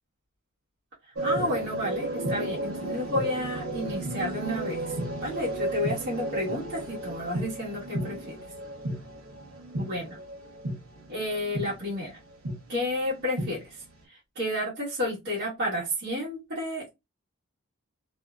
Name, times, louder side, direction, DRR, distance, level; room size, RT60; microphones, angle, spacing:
voice 1, 1.2-4.9 5.2-8.4 9.8-10.0 11.1-12.2 12.7-13.8 14.1-16.9, left 1 dB, 55° right, -7 dB, 1.1 m, -31 dB
sound 1, 1.2-11.9 12.4-12.6 13.0-13.5, right 1 dB, 80° right, 0.8 m, -33 dB
2.6 x 2.1 x 2.3 m, 0.22 s
head